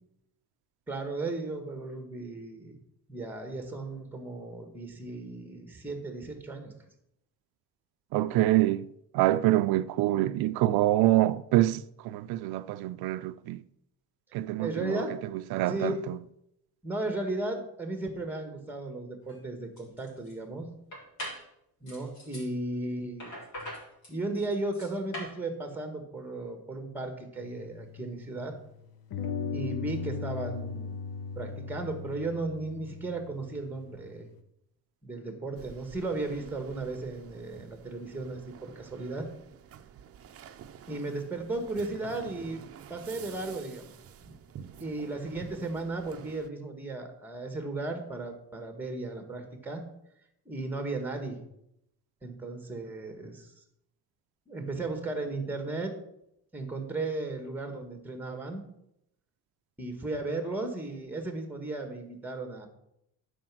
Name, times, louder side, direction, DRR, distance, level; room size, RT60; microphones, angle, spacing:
voice 1, 0.9-2.8 3.1-6.7 14.6-15.1 15.7-16.0 16.8-20.7 21.8-23.4 24.1-28.5 29.5-31.0 31.4-34.3 35.0-39.3 40.9-42.6 42.9-43.8 44.2-44.4 44.8-49.8 50.4-51.4 52.2-53.5 54.5-55.9 56.5-58.6 59.8-62.7, right 2 dB, 5° right, 1.4 m, -35 dB
voice 2, 8.1-8.9 9.1-13.6 14.3-15.0 15.5-16.2, right 15 dB, 85° right, 0.5 m, -26 dB
sound 1, 19.2-19.4 19.8-20.3 20.9-21.5 21.9-22.5 23.2-25.4, equal, 50° left, 4.0 m, -41 dB
sound 2, 27.4-28.6 29.1-34.3, left 5 dB, 80° left, 1.1 m, -38 dB
sound 3, 35.6-46.5, right 8 dB, 40° right, 0.6 m, -49 dB
11.5 x 5.1 x 6.0 m
cardioid pair, 170°, 37 cm